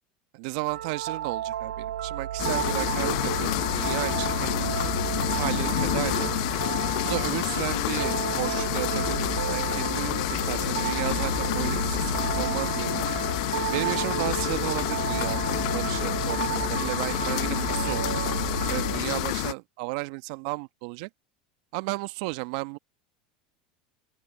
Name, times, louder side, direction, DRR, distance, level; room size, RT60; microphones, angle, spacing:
voice 1, 0.3-4.9 5.3-6.4 7.0-13.1 13.7-18.2 18.7-21.1 21.7-22.8, right 26 dB, 65° right, 1.2 m, -34 dB
sound 1, 0.7-19.0, right 11 dB, 90° right, 0.8 m, -32 dB
sound 2, 2.4-19.5, left 23 dB, 65° left, 0.6 m, -28 dB
open air
hypercardioid pair, 90°, 4 cm